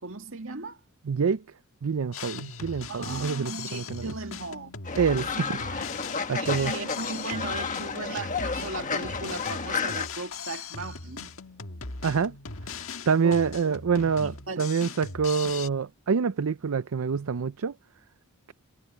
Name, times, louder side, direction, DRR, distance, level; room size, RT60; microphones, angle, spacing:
voice 1, 0.0-0.8 2.9-4.7 5.3-5.4 6.3-11.3 13.2-13.8 14.2-14.7, right 3 dB, 70° right, 2.3 m, -37 dB
voice 2, 1.1-1.4 1.8-4.1 5.0-5.8 6.3-6.7 12.0-12.3 13.1-17.7, right 6 dB, 85° right, 0.5 m, -26 dB
Drum kit, 2.1-15.7, left 5 dB, 75° left, 1.6 m, -39 dB
Fowl, 4.9-10.1, left 5 dB, 35° left, 1.5 m, -31 dB
head